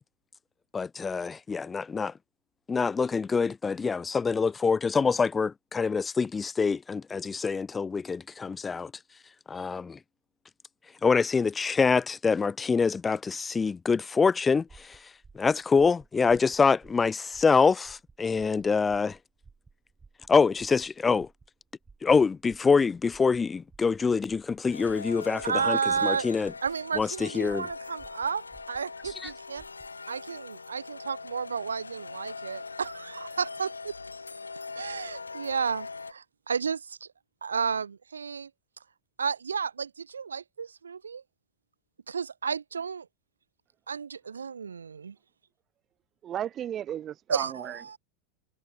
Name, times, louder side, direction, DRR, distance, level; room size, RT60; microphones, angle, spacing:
voice 1, 0.7-2.1 2.7-8.9 9.5-10.0 11.0-19.2 20.3-21.3 22.0-26.5 26.9-27.7 29.2-29.3, left 5 dB, 15° left, 0.7 m, -25 dB
sound 1, 14.7-29.9, right 4 dB, 15° right, 7.0 m, -57 dB
sound 2, 24.7-36.1, left 4 dB, 80° left, 0.7 m, -42 dB
voice 2, 25.4-26.3 26.6-29.6 30.1-33.9 34.7-37.1 37.4-38.5 39.2-41.2 42.1-43.1 43.9-45.2 47.3-48.0, right 6 dB, 75° right, 0.5 m, -32 dB
voice 3, 46.2-48.0, right 10 dB, 30° right, 0.7 m, -35 dB
figure-of-eight pair, 85°, 0 cm